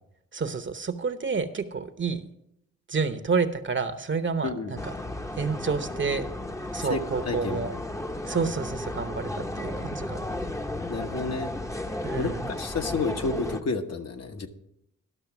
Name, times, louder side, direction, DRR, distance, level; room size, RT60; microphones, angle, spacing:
voice 1, 0.3-2.3 2.9-4.8 5.4-6.3 6.7-7.7 8.3-10.2 12.0-12.5, right 5 dB, 40° right, 11 dB, 0.9 m, -29 dB
sound 1, 4.8-13.6, left 1 dB, 10° left, 0.8 m, -34 dB
voice 2, 7.3-7.6 10.9-11.8 12.2-14.5, left 4 dB, 55° left, 5 dB, 1.1 m, -30 dB
12.0 x 6.3 x 6.0 m, 0.80 s
cardioid pair, 65°, 31 cm